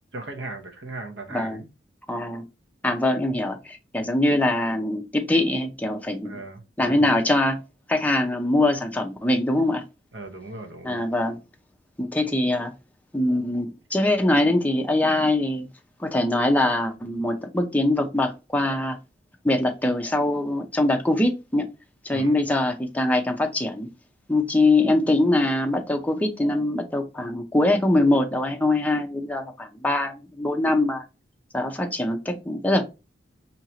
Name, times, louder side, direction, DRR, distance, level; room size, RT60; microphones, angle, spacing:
voice 1, 0.1-1.7 6.2-7.1 10.1-11.1 22.1-22.4, right 2 dB, 80° right, 0.9 m, -37 dB
voice 2, 1.3-1.6 2.1-2.4 2.8-6.3 6.8-7.6 7.9-9.8 10.8-11.4 12.0-12.7 13.1-15.7 16.0-19.0 19.4-21.7 22.0-23.9 24.3-31.0 31.5-32.8, left 1 dB, 10° left, 0.6 m, -23 dB
4.5 x 2.8 x 2.7 m
head